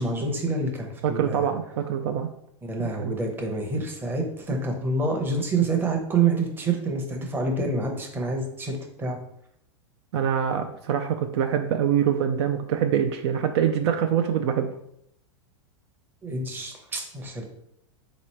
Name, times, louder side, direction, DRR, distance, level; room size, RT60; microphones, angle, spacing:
voice 1, 0.0-1.4 2.6-9.2 16.2-17.4, right 3 dB, 15° right, 2 dB, 0.8 m, -27 dB
voice 2, 1.0-2.3 3.0-3.2 10.1-14.7, right 8 dB, 55° right, 6 dB, 0.4 m, -24 dB
3.8 x 3.0 x 4.3 m, 0.75 s
supercardioid pair, 135°, 16 cm